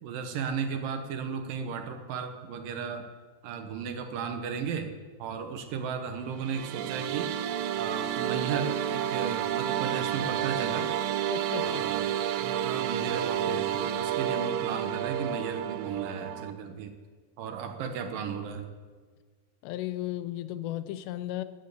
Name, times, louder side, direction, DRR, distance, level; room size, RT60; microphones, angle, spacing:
voice 1, 0.0-3.1 3.4-4.9 5.2-7.3 7.8-10.9 11.6-12.1 12.4-16.9 17.4-18.7, right 6 dB, 70° right, 6 dB, 2.3 m, -35 dB
sound 1, 6.3-16.5, right 10 dB, 85° right, 2.8 m, -30 dB
voice 2, 11.3-11.8 19.6-21.4, left 14 dB, 90° left, 13 dB, 2.9 m, -35 dB
13.5 x 9.6 x 8.2 m, 1.5 s
omnidirectional pair, 4.9 m